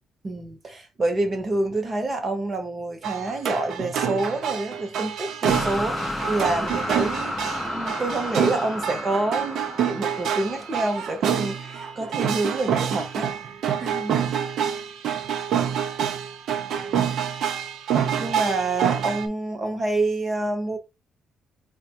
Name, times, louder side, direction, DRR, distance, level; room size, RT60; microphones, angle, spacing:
voice 1, 0.2-13.3 13.8-14.2 18.2-20.8, right 2 dB, 25° right, 0.8 m, -27 dB
sound 1, 3.0-19.3, right 8 dB, 65° right, 0.5 m, -27 dB
sound 2, 5.4-11.5, left 1 dB, 5° left, 0.4 m, -32 dB
4.6 x 2.2 x 2.7 m
cardioid pair, 170°, 0 cm